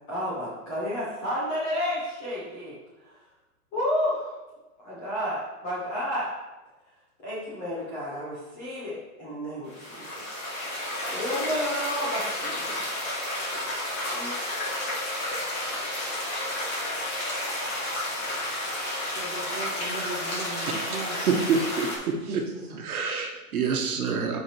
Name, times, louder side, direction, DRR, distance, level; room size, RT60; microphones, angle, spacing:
voice 1, 0.1-3.2 3.7-4.4 4.8-6.3 7.2-10.4 11.1-12.9 14.1-14.4, equal, 10° left, -8 dB, 0.6 m, -31 dB
sound 1, 9.7-22.0, left 1 dB, 25° left, 1.6 m, -31 dB
voice 2, 17.9-18.3 19.1-21.5 22.1-22.8, right 3 dB, 20° right, -4 dB, 1.3 m, -38 dB
voice 3, 21.3-21.9 22.8-24.4, right 5 dB, 75° right, 3 dB, 1.2 m, -26 dB
8.0 x 5.1 x 2.9 m, 1.1 s
hypercardioid pair, 165°, 44 cm